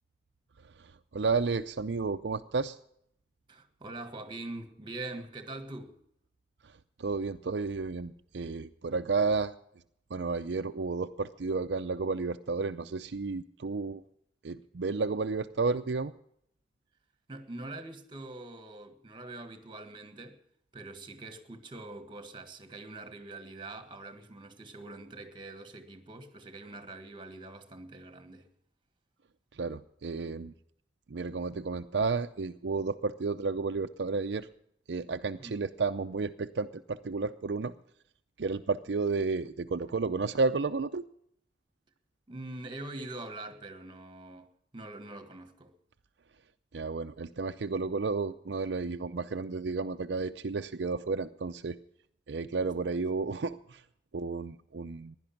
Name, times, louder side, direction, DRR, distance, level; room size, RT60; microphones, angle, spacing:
voice 1, 1.1-2.8 7.0-9.5 10.1-14.0 14.4-16.1 29.6-30.5 31.1-34.5 34.9-37.7 38.4-41.0 46.7-51.8 52.3-53.8 54.1-55.2, right 4 dB, 75° right, 0.5 m, -32 dB
voice 2, 3.5-5.9 17.3-20.4 20.7-28.5 35.4-35.7 42.3-45.7 52.9-53.0, right 2 dB, 30° right, 1.6 m, -44 dB
16.0 x 11.0 x 5.8 m
head